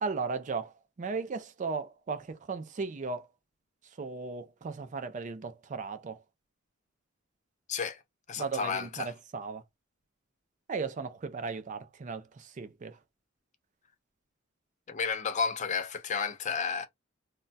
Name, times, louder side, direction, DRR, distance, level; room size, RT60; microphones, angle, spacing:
voice 1, 0.0-3.3 4.0-6.2 8.4-9.6 10.7-13.0, right 4 dB, 35° right, 0.4 m, -36 dB
voice 2, 7.7-8.0 8.3-9.1 14.9-16.9, left 6 dB, 35° left, 0.4 m, -32 dB
2.2 x 2.2 x 3.9 m
head